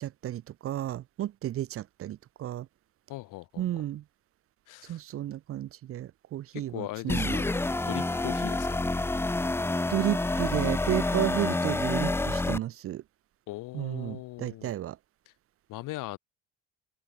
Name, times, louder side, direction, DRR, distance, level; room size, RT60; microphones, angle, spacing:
voice 1, 0.0-2.7 3.6-4.0 4.9-7.4 9.9-13.0 13.7-15.0, right 13 dB, 45° right, 0.8 m, -32 dB
voice 2, 3.1-3.8 4.7-5.0 6.5-7.6 7.9-8.9 13.5-14.7 15.2-15.3 15.7-16.2, left 18 dB, 75° left, 5.2 m, -39 dB
sound 1, 7.1-12.6, left 2 dB, 5° left, 0.8 m, -28 dB
cardioid pair, 145°, 32 cm